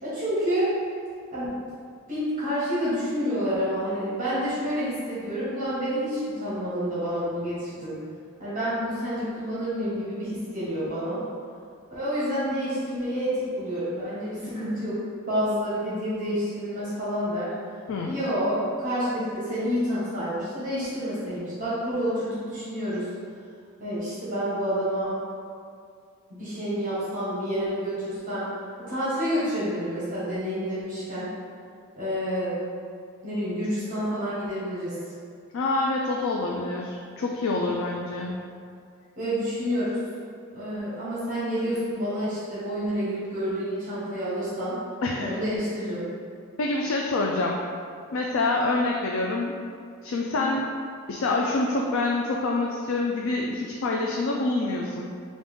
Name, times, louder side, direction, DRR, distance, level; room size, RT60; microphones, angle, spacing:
voice 1, 0.0-0.7 1.3-1.5 2.1-7.9 8.4-11.2 11.9-15.0 15.3-17.5 18.0-23.1 23.8-25.2 26.3-28.5 28.8-31.3 31.9-32.6 33.2-34.9 39.2-40.0 40.5-44.8 45.2-46.0, equal, 40° right, -11 dB, 1.4 m, -28 dB
voice 2, 35.5-38.4 45.0-45.3 46.6-47.6 48.1-49.5 50.0-50.7 51.1-55.1, left 2 dB, 70° left, -1 dB, 0.4 m, -26 dB
5.0 x 2.5 x 3.5 m, 2.3 s
head